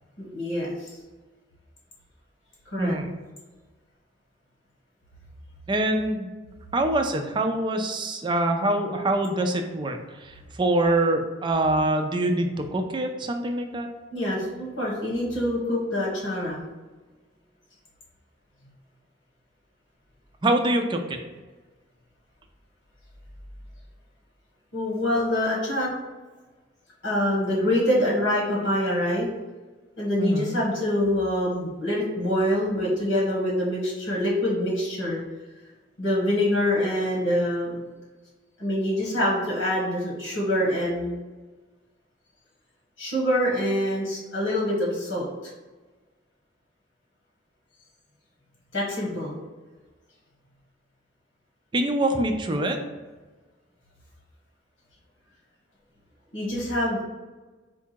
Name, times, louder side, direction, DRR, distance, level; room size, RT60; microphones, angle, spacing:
voice 1, 0.2-1.0 2.7-3.0 14.1-16.6 24.7-25.9 27.0-29.3 30.0-35.2 36.0-37.8 38.6-41.2 43.0-45.3 48.7-49.4 56.3-57.0, left 1 dB, 90° left, -4 dB, 1.5 m, -25 dB
voice 2, 2.8-3.1 5.7-6.3 6.7-13.9 20.4-21.2 30.2-30.5 51.7-52.8, right 1 dB, 25° right, 5 dB, 0.4 m, -25 dB
4.6 x 2.4 x 4.5 m, 1.3 s
head